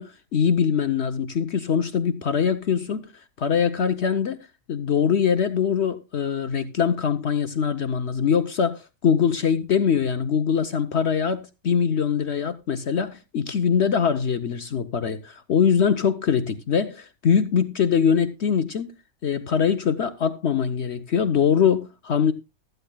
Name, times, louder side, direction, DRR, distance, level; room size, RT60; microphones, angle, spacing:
voice 1, 0.0-3.1 3.4-18.9 19.2-22.3, left 7 dB, 55° left, 1.0 m, -23 dB
16.0 x 13.5 x 2.2 m
omnidirectional pair, 1.4 m